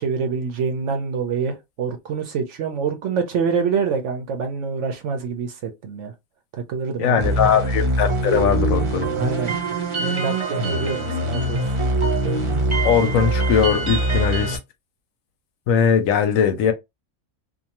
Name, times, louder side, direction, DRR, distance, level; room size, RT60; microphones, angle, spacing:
voice 1, 0.0-6.1 6.7-7.6 9.1-9.5 10.0-11.6, right 5 dB, 65° right, 0.8 m, -26 dB
voice 2, 7.0-9.1 12.8-14.6 15.7-16.7, left 7 dB, 70° left, 0.9 m, -20 dB
sound 1, 7.2-14.6, right 2 dB, 30° right, 0.6 m, -23 dB
2.6 x 2.3 x 2.8 m
omnidirectional pair, 1.5 m